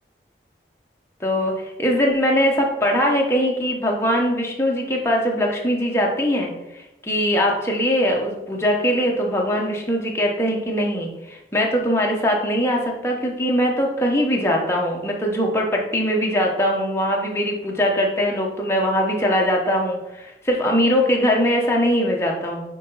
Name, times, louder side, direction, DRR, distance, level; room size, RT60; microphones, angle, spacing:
voice 1, 1.2-22.6, equal, 15° left, -1 dB, 1.0 m, -21 dB
9.6 x 3.3 x 4.0 m, 0.94 s
head